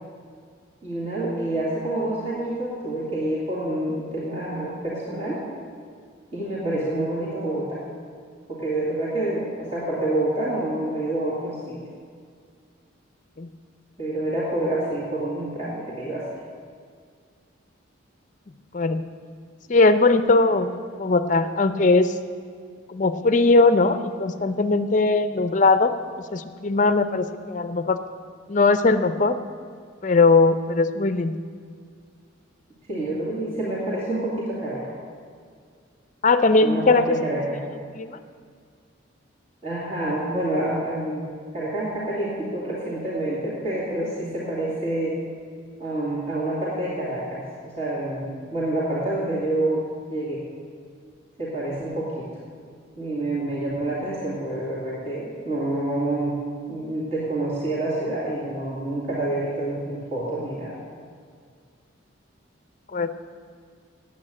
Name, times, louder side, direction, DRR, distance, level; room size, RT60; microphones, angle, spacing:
voice 1, 0.8-5.4 6.3-7.8 8.5-11.8 14.0-16.3 32.9-34.9 36.6-37.6 39.6-41.3 41.5-45.2 45.8-50.4 51.4-52.3 53.0-56.4 56.7-60.8, right 1 dB, 30° right, -7 dB, 2.3 m, -27 dB
voice 2, 19.7-20.7 21.0-22.1 22.9-25.9 26.3-28.0 28.5-29.4 30.0-31.3 36.2-37.0 38.0-38.2 62.9-63.1, left 3 dB, 40° left, 11 dB, 0.5 m, -19 dB
8.8 x 8.5 x 8.7 m, 2.1 s
head